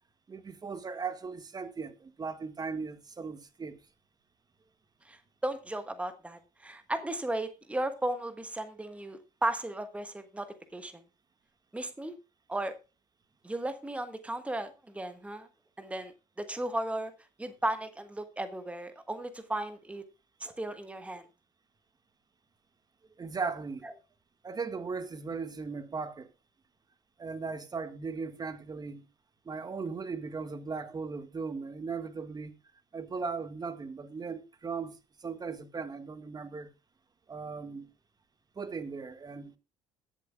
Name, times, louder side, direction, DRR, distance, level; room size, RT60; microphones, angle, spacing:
voice 1, 0.3-3.8 23.2-24.0 24.4-26.3 27.2-29.0 29.4-32.5 32.9-36.7 37.3-37.9 38.5-39.6, right 5 dB, 25° right, 1.7 m, -38 dB
voice 2, 5.0-10.5 10.7-10.9 11.7-12.1 12.5-12.7 13.4-15.5 15.8-16.1 16.4-17.1 17.4-20.0 20.4-21.2 23.8-23.9, right 1 dB, 10° right, 1.4 m, -35 dB
21.5 x 7.4 x 2.3 m
hypercardioid pair, 65°, 14 cm